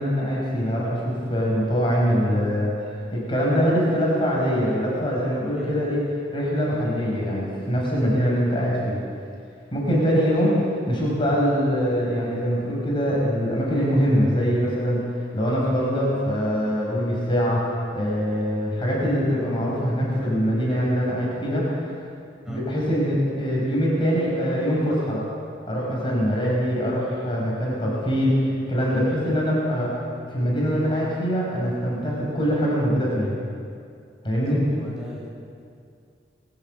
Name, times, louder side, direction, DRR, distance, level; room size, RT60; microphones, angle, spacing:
voice 1, 0.0-6.0 6.3-9.0 9.7-10.5 10.9-15.0 15.3-21.9 22.5-25.2 25.7-30.0 30.3-33.4 34.2-34.6, equal, 30° left, -4 dB, 5.4 m, -23 dB
voice 2, 34.5-35.3, right 1 dB, 5° right, -5 dB, 6.0 m, -38 dB
21.5 x 15.0 x 8.2 m, 2.3 s
head